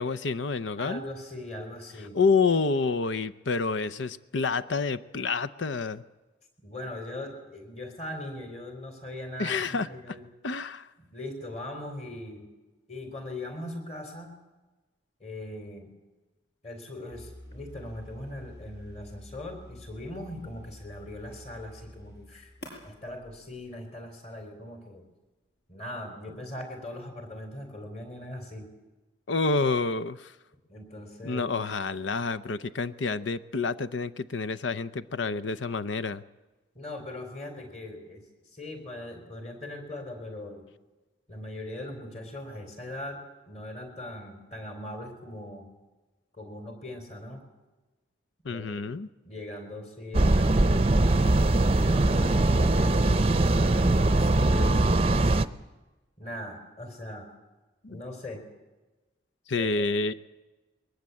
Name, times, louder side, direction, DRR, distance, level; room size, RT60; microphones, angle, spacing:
voice 1, 0.0-1.0 2.1-6.0 9.4-9.9 10.4-10.9 29.3-30.3 31.2-36.2 48.4-49.1 57.8-58.0 59.5-60.1, left 4 dB, 80° left, 15 dB, 0.7 m, -28 dB
voice 2, 0.8-2.2 6.6-10.2 11.0-12.5 12.9-14.4 15.2-15.9 16.6-22.5 22.8-25.0 25.7-28.7 30.7-31.4 36.7-38.2 38.5-40.6 41.3-43.2 43.5-45.7 46.3-47.4 48.4-48.9 49.2-51.2 51.8-52.9 53.4-55.1 56.2-57.3 57.9-58.4 59.5-59.9, left 1 dB, 35° left, 5 dB, 4.3 m, -40 dB
sound 1, 17.1-24.1, left 1 dB, 65° left, 7.5 m, -48 dB
sound 2, 50.1-55.5, right 2 dB, 30° right, 0.7 m, -21 dB
22.0 x 20.0 x 8.5 m, 1.2 s
head